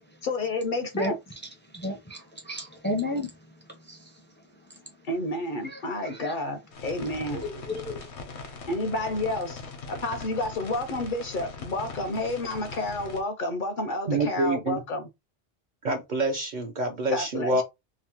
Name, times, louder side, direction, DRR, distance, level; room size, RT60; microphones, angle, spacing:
voice 1, 0.2-1.1 5.1-7.4 8.7-9.6 9.9-15.1 17.1-17.6, left 2 dB, 60° left, 0.6 m, -30 dB
voice 2, 1.7-3.3 3.9-4.0 5.6-5.8 7.3-8.0, left 1 dB, 15° left, 0.4 m, -32 dB
sound 1, 6.7-13.2, left 4 dB, 80° left, 1.0 m, -41 dB
voice 3, 14.1-14.8 15.8-17.6, right 2 dB, 55° right, 0.5 m, -27 dB
2.9 x 2.0 x 2.8 m
omnidirectional pair, 1.1 m